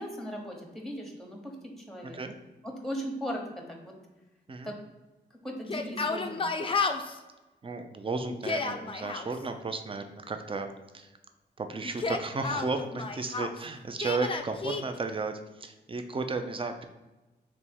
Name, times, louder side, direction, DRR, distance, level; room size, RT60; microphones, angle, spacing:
voice 1, 0.0-2.2 2.6-4.0 4.6-4.7 5.3-6.4, equal, ahead, 1 dB, 1.0 m, -38 dB
Yell, 5.6-7.2 8.3-9.3 11.8-13.6 14.0-14.8, left 4 dB, 30° left, 0.4 m, -31 dB
voice 2, 7.6-11.1 11.6-16.8, right 3 dB, 30° right, 6 dB, 0.5 m, -34 dB
3.5 x 3.1 x 4.4 m, 1.1 s
cardioid pair, 65°, 18 cm